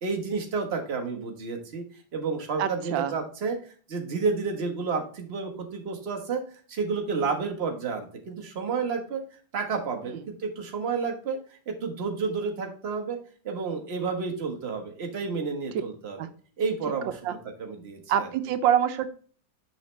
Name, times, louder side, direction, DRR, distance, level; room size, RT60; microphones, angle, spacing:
voice 1, 0.0-1.8 2.1-9.2 9.5-13.2 13.4-16.2 16.6-18.3, right 4 dB, 35° right, 2 dB, 1.4 m, -31 dB
voice 2, 2.6-3.1 16.2-16.3 17.2-17.4 18.1-19.1, right 10 dB, 85° right, 11 dB, 1.4 m, -25 dB
6.2 x 5.7 x 3.2 m, 0.43 s
omnidirectional pair, 2.0 m